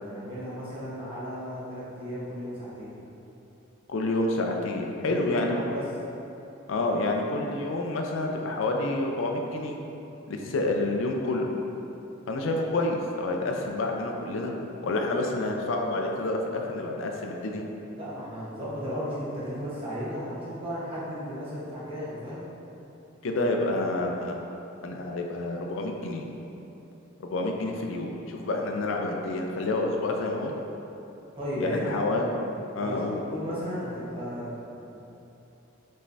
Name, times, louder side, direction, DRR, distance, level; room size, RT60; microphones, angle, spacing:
voice 1, 0.0-2.9 5.0-5.8 17.9-22.5 31.4-32.0 32.8-33.0 33.3-34.5, equal, 25° right, -9 dB, 1.1 m, -35 dB
voice 2, 3.9-5.6 6.7-9.8 10.3-11.5 12.3-14.5 14.8-17.6 23.2-24.5 24.8-26.2 27.2-30.5 31.6-32.3 32.7-33.2, left 2 dB, 70° left, 1 dB, 0.4 m, -28 dB
5.3 x 3.2 x 2.6 m, 3.0 s
head